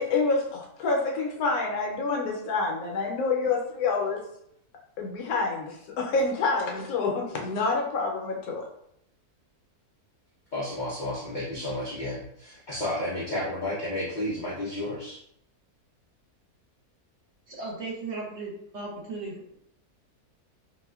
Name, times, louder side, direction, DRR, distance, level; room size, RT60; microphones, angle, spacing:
voice 1, 0.0-4.2 5.0-8.7, left 3 dB, 75° left, 0 dB, 1.1 m, -27 dB
voice 2, 10.5-15.2, left 1 dB, 55° left, -6 dB, 0.5 m, -32 dB
voice 3, 17.5-19.6, right 3 dB, 60° right, -3 dB, 1.0 m, -36 dB
4.0 x 2.2 x 2.3 m, 0.73 s
omnidirectional pair, 1.7 m